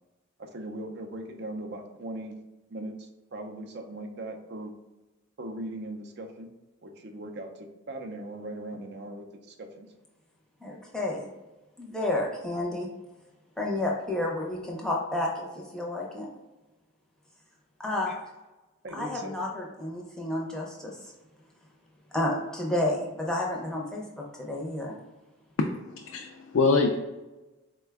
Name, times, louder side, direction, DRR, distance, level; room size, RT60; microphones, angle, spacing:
voice 1, 0.4-2.4 2.7-4.7 5.4-6.5 6.8-9.9 18.8-19.3, right 1 dB, 50° right, 4 dB, 0.5 m, -39 dB
voice 2, 10.6-11.3 11.8-12.9 13.6-16.3 17.8-18.2 18.9-21.0 22.1-24.9, left 1 dB, 5° left, -2 dB, 0.6 m, -31 dB
voice 3, 26.0-27.0, left 4 dB, 65° left, 2 dB, 0.3 m, -24 dB
4.2 x 2.2 x 3.4 m, 1.1 s
head